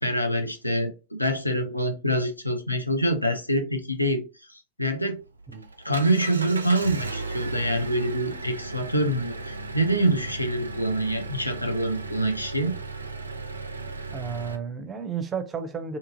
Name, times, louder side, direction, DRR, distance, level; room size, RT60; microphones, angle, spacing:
voice 1, 0.0-4.2 4.5-5.2 5.8-12.8, right 1 dB, 85° left, 0.4 m, -26 dB
Engine, 5.0-14.6, right 3 dB, 80° right, 0.3 m, -36 dB
voice 2, 14.1-16.0, right 6 dB, 20° right, 0.5 m, -32 dB
2.7 x 2.4 x 2.6 m
figure-of-eight pair, 90°, 0 cm